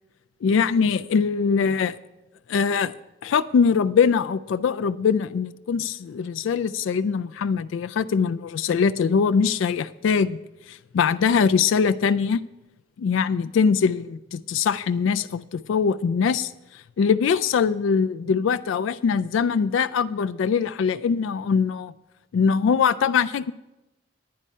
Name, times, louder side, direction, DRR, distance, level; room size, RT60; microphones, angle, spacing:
voice 1, 0.4-2.0 2.5-2.9 3.2-10.4 10.7-12.4 13.0-16.5 17.0-21.9 22.3-23.5, left 6 dB, 70° left, 0.3 m, -22 dB
10.0 x 9.5 x 5.4 m
head